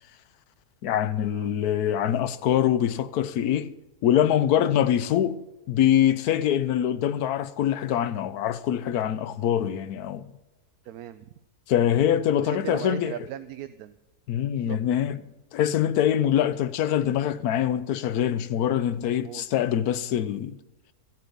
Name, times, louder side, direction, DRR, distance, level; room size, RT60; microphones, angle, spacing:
voice 1, 0.8-3.7 4.0-5.4 5.7-10.3 11.7-13.1 14.3-15.2 15.5-20.6, left 10 dB, 80° left, 1.2 m, -24 dB
voice 2, 10.8-11.3 12.4-14.0 14.5-14.8 19.0-19.4, right 11 dB, 75° right, 1.0 m, -38 dB
14.5 x 8.2 x 5.3 m
omnidirectional pair, 1.6 m